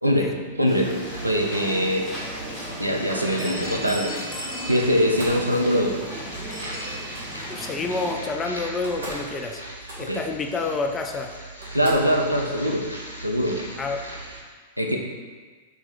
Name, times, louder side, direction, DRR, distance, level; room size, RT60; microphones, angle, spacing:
voice 1, 0.0-2.1 2.8-4.2 4.7-6.0 10.0-10.2 11.7-12.9 13.2-13.7 14.8-15.0, equal, 90° right, 1 dB, 0.4 m, -23 dB
sound 1, 0.7-8.1, equal, ahead, 1.3 m, -35 dB
sound 2, 0.8-14.4, right 1 dB, 85° left, 0.6 m, -39 dB
Slam, 4.8-5.5 6.8-7.3 8.4-8.5 8.7-9.3 9.6-10.3 11.0-11.1 11.6-12.2, right 1 dB, 70° right, 1.1 m, -39 dB
voice 2, 7.5-9.6 10.0-11.3 13.8-14.0, left 3 dB, 20° left, 5 dB, 0.3 m, -28 dB
3.2 x 3.0 x 3.8 m, 1.4 s
figure-of-eight pair, 95°, 0 cm